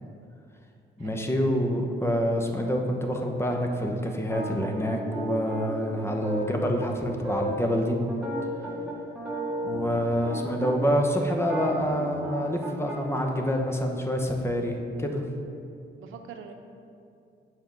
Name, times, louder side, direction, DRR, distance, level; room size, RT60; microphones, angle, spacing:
voice 1, 1.0-8.0 9.6-15.2, equal, 10° left, 2 dB, 0.9 m, -27 dB
sound 1, 4.3-11.0 11.4-13.2, right 1 dB, 5° right, 1.7 m, -34 dB
voice 2, 8.6-8.9 15.0-15.1 16.0-16.5, right 7 dB, 85° right, 5 dB, 0.7 m, -45 dB
7.2 x 4.5 x 5.4 m, 2.5 s
cardioid pair, 90°, 20 cm